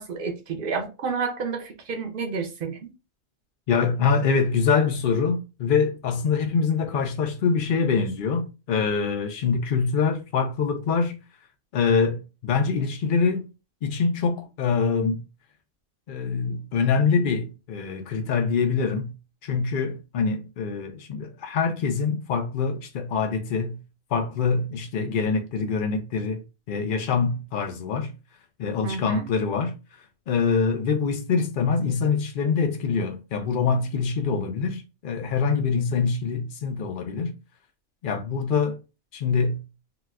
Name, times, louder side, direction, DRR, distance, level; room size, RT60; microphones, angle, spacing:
voice 1, 0.0-2.9 28.8-29.2, right 5 dB, 60° right, 0.6 m, -30 dB
voice 2, 3.7-11.2 11.7-13.5 13.8-15.2 16.1-19.1 19.4-23.8 24.1-26.4 26.7-28.1 28.6-29.8 30.3-37.3 38.0-38.8 39.1-39.6, left 5 dB, 90° left, 0.4 m, -24 dB
4.0 x 2.2 x 2.3 m
omnidirectional pair, 1.5 m